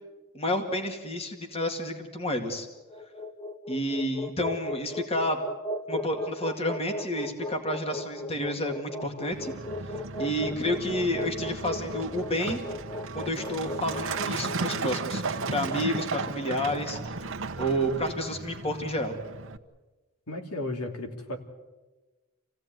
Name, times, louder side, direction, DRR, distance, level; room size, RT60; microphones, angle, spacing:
voice 1, 0.3-2.7 3.7-5.4 5.9-9.5 10.2-12.7 13.1-17.3 17.6-19.1, equal, 25° left, 5 dB, 2.2 m, -30 dB
sound 1, 2.8-17.1, left 1 dB, 10° left, 0.9 m, -37 dB
Truck, 9.3-19.6, right 3 dB, 60° right, 1.2 m, -35 dB
voice 2, 20.3-21.4, left 2 dB, 85° left, 4 dB, 3.1 m, -34 dB
27.5 x 16.5 x 9.3 m, 1.2 s
head